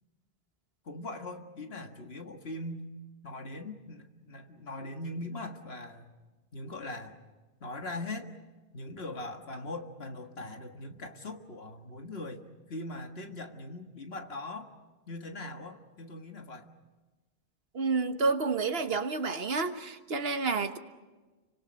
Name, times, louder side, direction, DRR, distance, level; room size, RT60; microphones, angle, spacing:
voice 1, 0.9-2.8 3.2-6.1 6.5-7.2 7.6-8.3 8.7-12.4 12.7-14.7 15.1-16.7, left 2 dB, 75° left, 5 dB, 2.0 m, -41 dB
voice 2, 17.7-20.8, right 4 dB, 70° right, 7 dB, 1.6 m, -29 dB
30.0 x 25.0 x 6.4 m, 1.2 s
omnidirectional pair, 1.1 m